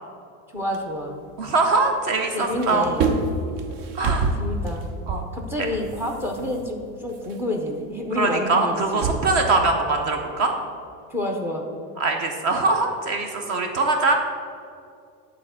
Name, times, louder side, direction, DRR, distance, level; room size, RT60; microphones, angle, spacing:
voice 1, 0.5-1.2 2.3-3.1 4.4-4.9 5.3-9.2 11.1-11.7, left 1 dB, 5° right, 1 dB, 0.3 m, -28 dB
sound 1, 0.6-2.1 2.4-9.4, right 3 dB, 65° right, 1.0 m, -29 dB
voice 2, 1.4-2.9 3.9-4.3 5.1-5.2 8.2-10.5 12.0-14.2, right 3 dB, 45° right, 4 dB, 0.7 m, -22 dB
9.2 x 4.3 x 7.4 m, 2.4 s
cardioid pair, 175°, 42 cm